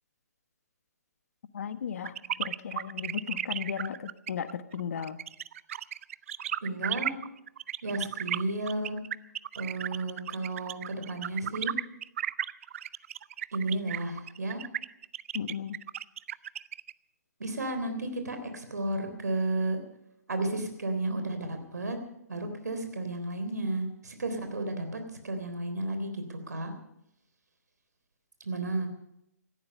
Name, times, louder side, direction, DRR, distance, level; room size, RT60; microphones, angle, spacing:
voice 1, 1.5-5.2 15.3-15.8, left 7 dB, 60° left, 12 dB, 1.2 m, -35 dB
sound 1, 2.1-16.9, right 10 dB, 50° right, 0.5 m, -34 dB
voice 2, 6.6-7.1 7.8-9.0 9.6-11.7 13.5-14.6 17.4-19.8 20.3-22.0 22.3-26.7 28.4-28.9, right 2 dB, 80° right, 7 dB, 3.6 m, -33 dB
18.0 x 14.0 x 5.4 m, 0.81 s
figure-of-eight pair, 135°, 9 cm